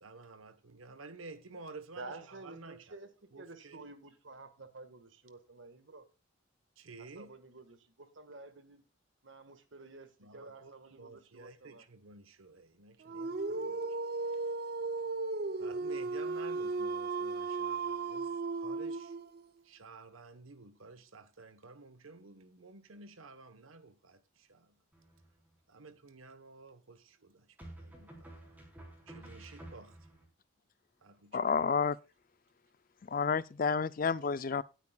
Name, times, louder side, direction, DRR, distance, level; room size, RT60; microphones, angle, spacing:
voice 1, 0.0-2.9 3.3-3.8 6.8-7.4 10.2-14.0 14.2-14.5 15.6-19.2 19.6-24.8 25.7-28.5 29.1-30.1 31.0-31.4, right 3 dB, 85° right, 1.1 m, -52 dB
voice 2, 1.9-3.1 3.4-6.1 7.0-8.8 9.2-11.8, right 3 dB, 65° right, 1.5 m, -50 dB
Dog, 13.0-19.4, right 3 dB, 50° right, 0.5 m, -35 dB
sound 1, 24.9-25.5 27.6-30.2, right 1 dB, 10° right, 3.9 m, -51 dB
voice 3, 31.3-32.0 33.1-34.6, left 5 dB, 40° left, 0.4 m, -30 dB
18.5 x 8.3 x 2.3 m
head